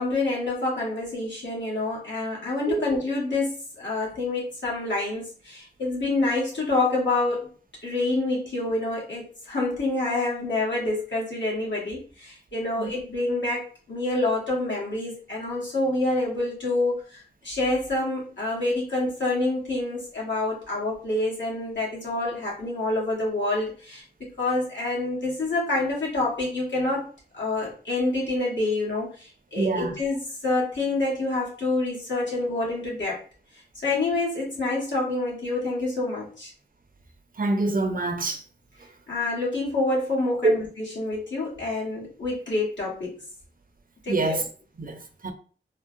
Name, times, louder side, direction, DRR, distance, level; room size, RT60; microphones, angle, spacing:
voice 1, 0.0-7.5 7.8-24.0 24.4-27.0 27.3-33.2 33.7-36.5 39.1-43.2 44.0-44.4, left 2 dB, 80° left, 1.3 m, -27 dB
voice 2, 29.6-29.9 37.4-38.4 40.4-40.5 44.1-44.4 44.8-45.3, right 3 dB, 50° right, 0.5 m, -25 dB
3.6 x 2.0 x 2.5 m
wide cardioid pair, 55°, 19 cm